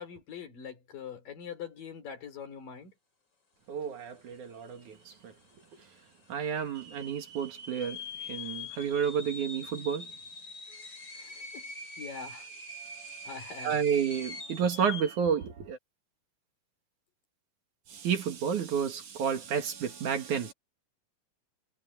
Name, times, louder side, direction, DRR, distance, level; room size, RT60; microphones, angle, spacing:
voice 1, 0.0-2.9 11.1-11.7 12.0-12.5 13.3-13.9, left 7 dB, 70° left, 5.5 m, -43 dB
voice 2, 3.7-4.9 6.3-8.0 8.3-10.1 13.6-15.8 17.9-20.5, right 7 dB, 60° right, 3.2 m, -30 dB
sound 1, 4.3-4.4 4.6-5.2 5.7-5.8 6.5-15.3, left 2 dB, 30° left, 5.3 m, -44 dB
omnidirectional pair, 4.0 m